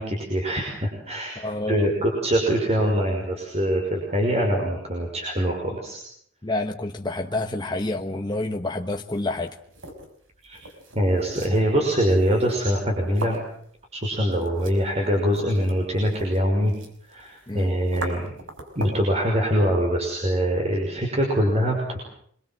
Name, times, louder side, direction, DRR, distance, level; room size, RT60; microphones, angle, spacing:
voice 1, 0.0-1.4 1.7-6.0 10.4-10.6 10.9-13.4 13.9-16.7 17.1-18.3 18.8-22.0, equal, 35° right, 1 dB, 5.7 m, -23 dB
voice 2, 1.4-1.9 6.4-9.6 17.5-17.7, left 2 dB, 20° left, 3 dB, 1.2 m, -28 dB
sound 1, 8.9-19.1, right 1 dB, 75° right, 5.5 m, -41 dB
26.5 x 22.5 x 7.7 m, 0.67 s
head